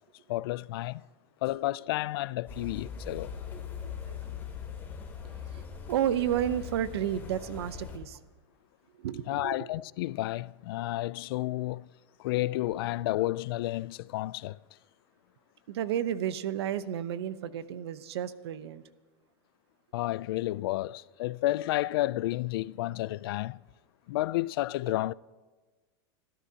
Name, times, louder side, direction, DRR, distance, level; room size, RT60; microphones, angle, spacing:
voice 1, 0.3-1.0 1.4-3.3 9.3-11.9 12.2-14.6 19.9-23.6 24.1-25.1, left 17 dB, 65° left, 0.4 m, -31 dB
sound 1, 2.5-8.0, left 6 dB, 15° left, 2.9 m, -41 dB
voice 2, 3.8-4.2 5.5-8.2 9.0-9.6 15.7-18.8 24.9-25.0, right 10 dB, 90° right, 0.8 m, -32 dB
27.0 x 13.5 x 2.8 m
supercardioid pair, 160°, 13 cm